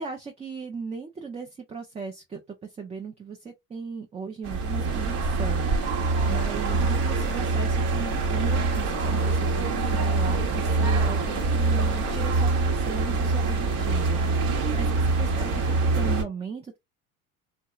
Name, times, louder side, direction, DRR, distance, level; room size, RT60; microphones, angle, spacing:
voice 1, 0.0-16.8, right 5 dB, 15° right, 0.4 m, -37 dB
sound 1, 4.4-16.2, right 3 dB, 55° right, 1.0 m, -24 dB
2.7 x 2.1 x 2.3 m
hypercardioid pair, 80°, 42 cm